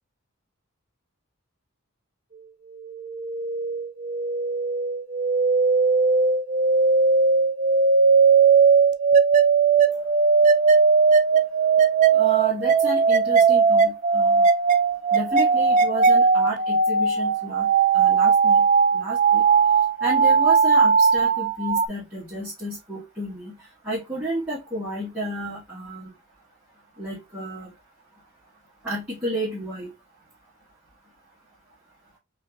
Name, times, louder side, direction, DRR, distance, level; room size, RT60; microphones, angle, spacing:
sound 1, 2.7-21.9, right 5 dB, 35° right, 0.3 m, -19 dB
voice 1, 12.1-14.4 15.1-18.7 18.9-19.4 20.0-23.5 23.8-26.1 27.0-27.7 28.8-29.9, right 1 dB, 5° right, 1.5 m, -31 dB
4.4 x 2.8 x 2.8 m
head